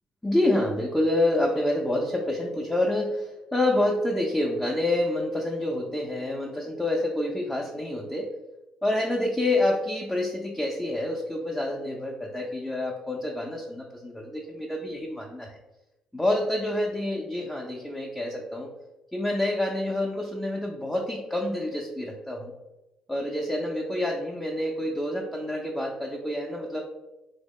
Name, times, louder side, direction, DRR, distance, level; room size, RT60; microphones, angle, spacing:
voice 1, 0.2-8.3 8.8-15.5 16.1-18.7 19.1-22.5 23.1-26.8, left 1 dB, 5° left, -1 dB, 0.4 m, -27 dB
2.9 x 2.0 x 3.6 m, 0.98 s
supercardioid pair, 65°, 3 cm